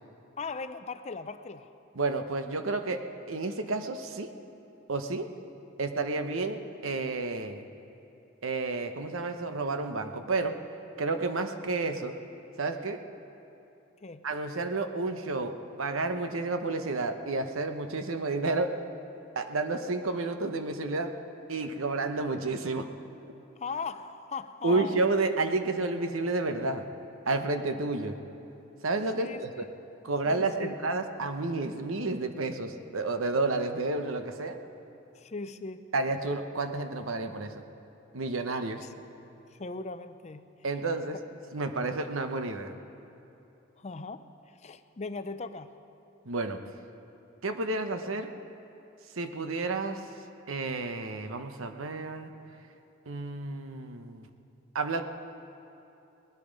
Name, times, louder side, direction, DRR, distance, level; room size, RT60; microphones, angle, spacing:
voice 1, 0.4-1.7 14.0-14.2 23.6-25.0 29.2-29.4 30.2-30.8 35.1-35.9 38.8-38.9 39.5-40.5 43.8-44.3 44.6-45.7, left 4 dB, 35° left, 11 dB, 0.5 m, -38 dB
voice 2, 1.9-3.0 3.3-4.3 4.9-5.3 5.8-7.6 8.4-10.5 11.0-12.1 12.6-13.0 14.2-15.5 15.8-18.7 19.4-21.1 21.5-22.9 24.6-26.8 27.3-28.1 28.8-29.6 30.0-34.6 35.9-37.6 38.1-38.8 40.6-41.2 41.5-42.7 46.2-46.6 47.4-48.3 49.2-50.0 50.5-52.3 53.1-54.3 54.7-55.0, right 3 dB, 80° right, 7 dB, 0.9 m, -30 dB
19.5 x 12.0 x 5.2 m, 3.0 s
head